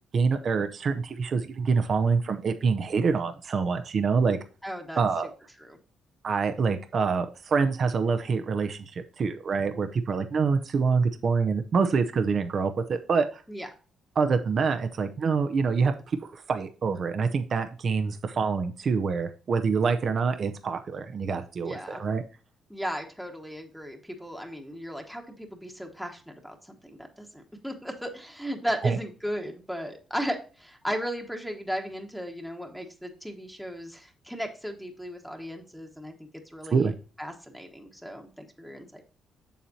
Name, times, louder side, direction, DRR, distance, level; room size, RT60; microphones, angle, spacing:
voice 1, 0.1-4.4 5.0-5.3 6.2-13.4 14.2-22.2 28.8-29.0 36.7-36.9, right 5 dB, 50° right, 8 dB, 0.6 m, -26 dB
voice 2, 4.6-5.0 5.6-5.8 13.5-13.7 21.6-22.0 22.7-36.1 36.4-36.9 37.2-39.0, equal, ahead, 2 dB, 1.2 m, -36 dB
7.4 x 7.1 x 2.7 m, 0.37 s
cardioid pair, 90°, 0 cm